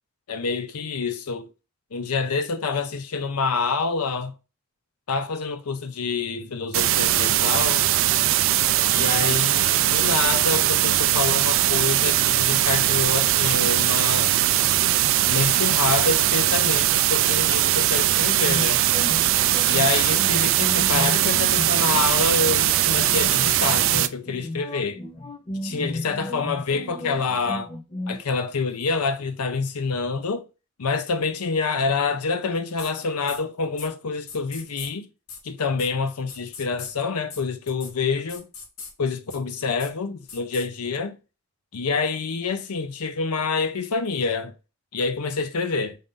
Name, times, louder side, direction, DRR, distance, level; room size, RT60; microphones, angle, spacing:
voice 1, 0.3-1.5 1.9-4.3 5.1-7.8 8.9-14.5 15.3-18.8 19.6-25.0 25.6-27.7 28.1-30.5 30.8-35.0 35.4-38.4 39.0-41.2 41.7-44.5 44.9-46.0, left 4 dB, 90° left, 0.7 m, -27 dB
sound 1, 6.7-24.1, right 13 dB, 60° right, 0.3 m, -20 dB
sound 2, 18.4-28.2, left 1 dB, 25° left, 0.5 m, -34 dB
sound 3, 32.8-32.9 33.3-33.4 33.8-33.9 34.3-34.9 35.3-35.4 35.8-35.9 36.3-36.9 37.3-37.4 37.7-37.9 38.3-38.9 39.3-39.4 39.8-39.9 40.3-40.7, left 5 dB, 70° left, 1.0 m, -39 dB
5.4 x 2.6 x 3.7 m
head